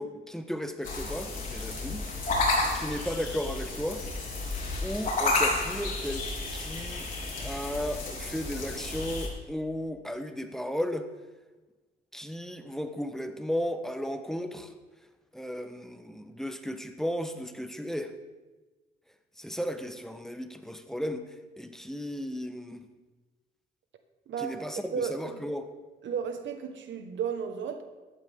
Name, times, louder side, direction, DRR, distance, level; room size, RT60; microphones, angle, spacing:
voice 1, 0.0-2.1 2.4-4.0 4.5-6.2 6.5-7.1 7.4-11.1 12.1-14.7 15.3-18.1 19.4-21.2 21.6-22.8 24.4-25.7, equal, ahead, 1.1 m, -35 dB
sound 1, 0.8-9.3, left 2 dB, 45° left, 4.0 m, -31 dB
voice 2, 24.3-24.6 24.9-25.4 26.0-27.8, right 7 dB, 70° right, 1.4 m, -33 dB
14.5 x 12.0 x 3.7 m
cardioid pair, 90°, 20 cm